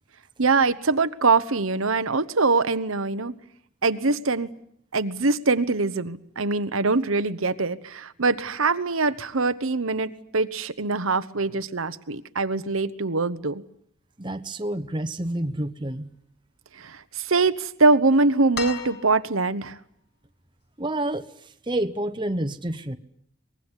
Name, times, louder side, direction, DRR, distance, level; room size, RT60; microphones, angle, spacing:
voice 1, 0.4-3.3 3.8-4.5 4.9-13.6 16.8-19.8, right 3 dB, 70° right, 11 dB, 1.1 m, -23 dB
voice 2, 14.2-16.1 20.8-23.0, right 1 dB, 20° right, 9 dB, 1.1 m, -29 dB
sound 1, 18.5-19.6 21.1-21.2, left 4 dB, 50° left, 6.0 m, -35 dB
23.5 x 21.0 x 9.9 m, 0.69 s
head